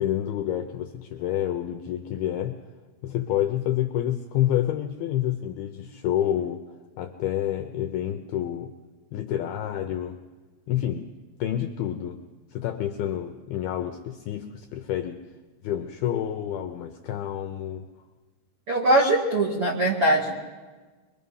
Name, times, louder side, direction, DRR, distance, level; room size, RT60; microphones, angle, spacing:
voice 1, 0.0-2.6 3.0-6.6 7.0-8.7 9.1-10.2 10.7-11.1 11.4-12.2 12.5-15.2 15.6-17.9, left 11 dB, 80° left, 6 dB, 2.3 m, -28 dB
voice 2, 18.7-20.3, right 1 dB, 55° right, -2 dB, 1.7 m, -21 dB
24.0 x 23.5 x 5.6 m, 1.3 s
omnidirectional pair, 5.4 m